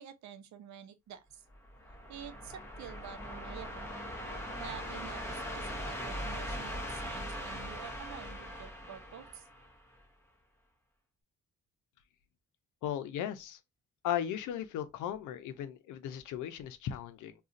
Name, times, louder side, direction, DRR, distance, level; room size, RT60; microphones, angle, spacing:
voice 1, 0.0-1.4 2.1-4.0 4.6-9.5, right 9 dB, 65° right, 0.7 m, -49 dB
sound 1, 1.5-10.0, equal, 10° left, 0.8 m, -40 dB
voice 2, 12.8-13.6 14.0-17.3, left 10 dB, 85° left, 0.6 m, -36 dB
2.5 x 2.3 x 3.8 m
cardioid pair, 90°, 30 cm